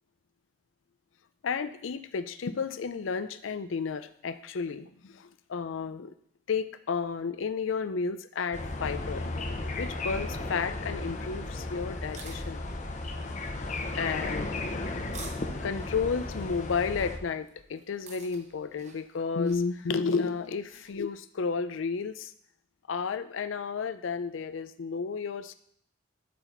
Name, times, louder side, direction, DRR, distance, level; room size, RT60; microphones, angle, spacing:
voice 1, 1.4-6.1 6.5-9.2 9.8-12.7 14.0-14.7 15.6-22.3 22.9-25.5, left 5 dB, 85° left, 12 dB, 0.5 m, -32 dB
sound 1, 8.5-17.2, left 2 dB, 40° left, 0.8 m, -35 dB
sound 2, 11.9-21.0, right 4 dB, 40° right, 1.1 m, -52 dB
12.0 x 4.1 x 4.4 m, 0.66 s
head